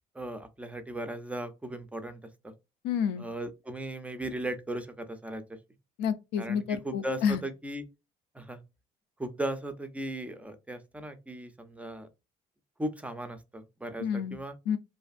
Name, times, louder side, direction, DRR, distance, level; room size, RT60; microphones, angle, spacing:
voice 1, 0.2-2.5 3.2-5.4 6.4-7.8 8.3-8.6 9.2-12.1 12.8-14.6, right 1 dB, 10° right, 0.4 m, -37 dB
voice 2, 2.8-3.3 6.0-7.4 14.0-14.4 14.7-14.8, left 7 dB, 90° left, 0.4 m, -29 dB
2.5 x 2.4 x 2.4 m
cardioid pair, 110°, 17 cm